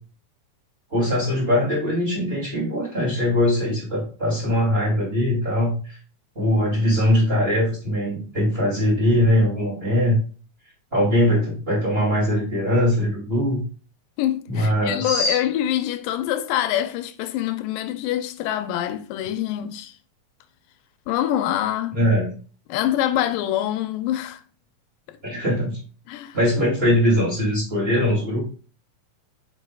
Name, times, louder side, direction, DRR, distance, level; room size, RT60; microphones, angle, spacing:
voice 1, 0.9-6.0 6.3-10.2 10.9-13.6 14.5-15.4 21.9-22.3 25.2-25.8 26.3-28.4, left 1 dB, 20° right, 2.3 m, -21 dB
voice 2, 14.2-19.9 21.1-22.0 22.7-24.4 25.1-25.2 26.1-26.4, left 12 dB, 85° left, 2.2 m, -25 dB
8.0 x 5.5 x 2.3 m
omnidirectional pair, 3.9 m